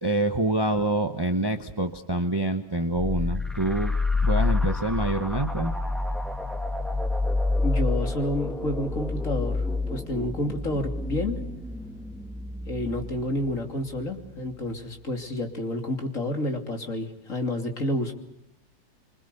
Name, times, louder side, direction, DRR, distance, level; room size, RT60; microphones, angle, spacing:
voice 1, 0.0-3.9 4.2-5.7, right 2 dB, 15° right, 7 dB, 1.1 m, -26 dB
sound 1, 2.9-14.3, left 3 dB, ahead, 1.3 m, -28 dB
voice 2, 7.6-11.4 12.7-18.1, left 1 dB, 45° left, 3 dB, 3.3 m, -29 dB
26.0 x 25.5 x 6.9 m, 0.83 s
omnidirectional pair, 2.0 m